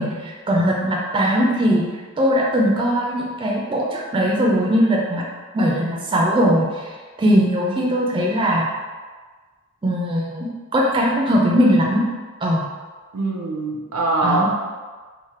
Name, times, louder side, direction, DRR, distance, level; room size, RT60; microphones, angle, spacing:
voice 1, 0.0-1.9 2.2-5.2 5.5-6.8 7.2-8.7 9.8-12.0 12.4-12.7 14.2-14.5, equal, 25° right, -2 dB, 0.4 m, -19 dB
voice 2, 7.6-8.0 13.1-14.5, right 2 dB, 80° right, 0 dB, 0.5 m, -24 dB
3.2 x 2.1 x 4.2 m, 1.4 s
head